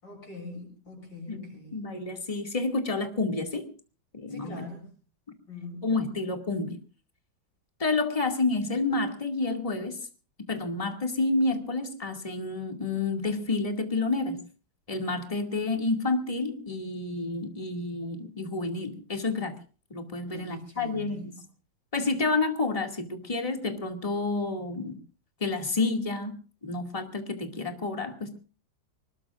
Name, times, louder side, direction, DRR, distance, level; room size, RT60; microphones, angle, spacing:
voice 1, 0.0-1.9 4.3-4.9 5.5-5.9 20.3-21.4, left 2 dB, 70° left, 0 dB, 7.8 m, -43 dB
voice 2, 1.3-3.7 4.1-4.6 5.8-6.8 7.8-10.0 10.5-14.4 14.9-19.6 19.9-21.3 21.9-25.0 25.4-28.4, left 3 dB, 20° left, 4 dB, 2.3 m, -29 dB
25.0 x 20.5 x 2.5 m, 0.38 s
omnidirectional pair, 2.1 m